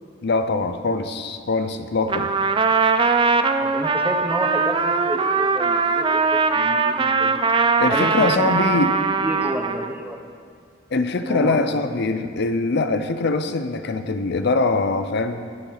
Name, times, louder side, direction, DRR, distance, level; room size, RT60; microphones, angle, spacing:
voice 1, 0.2-2.3 7.8-9.0 10.9-15.5, left 3 dB, 55° left, 9 dB, 0.6 m, -23 dB
Trumpet, 2.1-9.9, right 4 dB, 25° right, 0.4 m, -21 dB
voice 2, 3.6-7.4 7.9-8.6 9.2-10.2 11.2-11.8, right 1 dB, 10° right, 3 dB, 0.8 m, -30 dB
20.5 x 7.1 x 4.0 m, 2.2 s
head